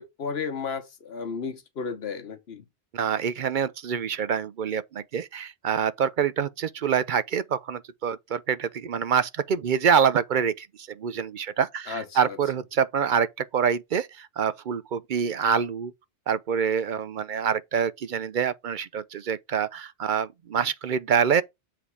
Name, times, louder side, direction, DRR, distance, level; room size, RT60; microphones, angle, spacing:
voice 1, 0.0-2.6 11.9-12.4, left 5 dB, 70° left, 1.3 m, -33 dB
voice 2, 2.9-15.9 16.3-21.4, right 7 dB, 60° right, 0.6 m, -26 dB
7.5 x 3.5 x 4.7 m
omnidirectional pair, 1.1 m